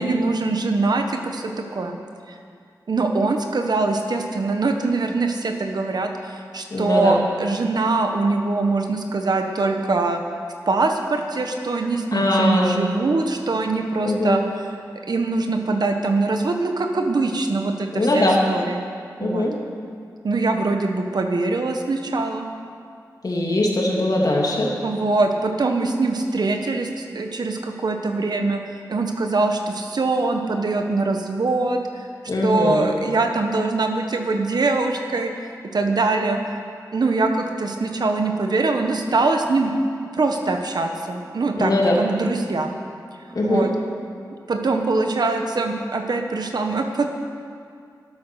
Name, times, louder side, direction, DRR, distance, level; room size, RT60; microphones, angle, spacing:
voice 1, 0.0-2.0 2.3-2.4 2.9-10.2 10.7-14.4 15.1-18.8 19.2-19.5 20.2-22.4 24.8-28.6 28.9-32.0 32.4-35.3 35.7-36.4 36.9-39.7 40.1-42.7 43.4-43.7 44.3-47.0, right 3 dB, 65° right, 4 dB, 1.4 m, -23 dB
voice 2, 6.7-7.2 12.1-12.8 14.0-14.4 17.9-18.4 19.2-19.5 23.2-24.7 32.3-32.9 41.6-42.0 43.3-43.7, left 1 dB, 60° left, -2 dB, 3.0 m, -21 dB
13.0 x 12.0 x 6.5 m, 2.2 s
cardioid pair, 60°, 7 cm